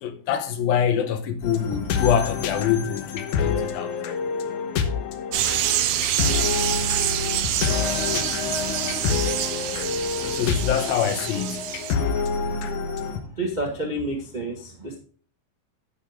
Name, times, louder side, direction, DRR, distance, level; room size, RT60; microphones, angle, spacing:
voice 1, 0.0-3.9 10.2-11.6, left 8 dB, 85° left, 2.9 m, -25 dB
sound 1, 1.4-13.2, left 6 dB, 70° left, 2.2 m, -27 dB
sound 2, 5.3-11.9, right 11 dB, 80° right, 1.6 m, -26 dB
voice 2, 13.4-15.0, right 1 dB, 65° right, 0.4 m, -29 dB
11.0 x 7.4 x 3.5 m
omnidirectional pair, 4.1 m